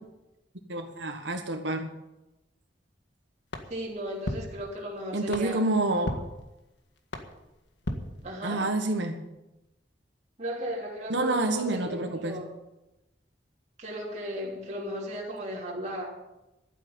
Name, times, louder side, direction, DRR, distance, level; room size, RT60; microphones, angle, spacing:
voice 1, 0.7-1.9 5.1-6.2 8.4-9.2 11.1-12.4, right 2 dB, 85° right, 5 dB, 1.4 m, -28 dB
sound 1, 3.5-8.8, left 1 dB, 75° left, 1.8 m, -39 dB
voice 2, 3.7-5.6 8.2-8.7 10.4-12.5 13.8-16.2, equal, 40° right, -3 dB, 3.1 m, -35 dB
12.0 x 9.1 x 9.5 m, 0.96 s
head